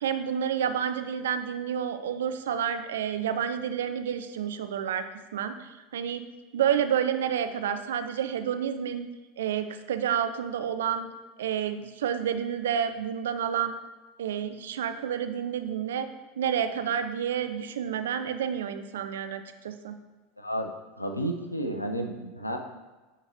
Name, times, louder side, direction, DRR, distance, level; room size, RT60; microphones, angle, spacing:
voice 1, 0.0-5.1 5.3-6.2 6.5-9.1 9.4-11.1 11.4-13.8 14.2-16.1 16.4-19.9, right 8 dB, 65° right, 9 dB, 0.4 m, -29 dB
voice 2, 20.4-20.7 21.0-22.6, right 1 dB, 85° left, 4 dB, 0.6 m, -31 dB
10.0 x 3.8 x 3.0 m, 1.2 s
figure-of-eight pair, 80°, 0 cm